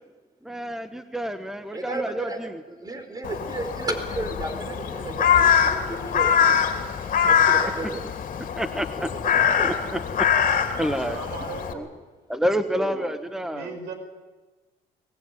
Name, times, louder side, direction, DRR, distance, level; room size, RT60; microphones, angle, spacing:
voice 1, 0.4-2.6 7.7-7.8 8.5-9.1 9.6-10.3 10.8-11.2 11.7-11.9 12.3-13.8, equal, 5° right, 9 dB, 1.2 m, -29 dB
voice 2, 1.7-6.6 7.3-8.1 9.0-9.8 12.7-13.1, right 2 dB, 20° right, 7 dB, 4.6 m, -33 dB
Crow, 3.2-11.7, left 8 dB, 55° left, 3.1 m, -23 dB
voice 3, 11.0-12.0 13.5-13.9, right 5 dB, 85° right, 7 dB, 5.5 m, -37 dB
23.0 x 21.0 x 9.3 m, 1.3 s
cardioid pair, 110°, 17 cm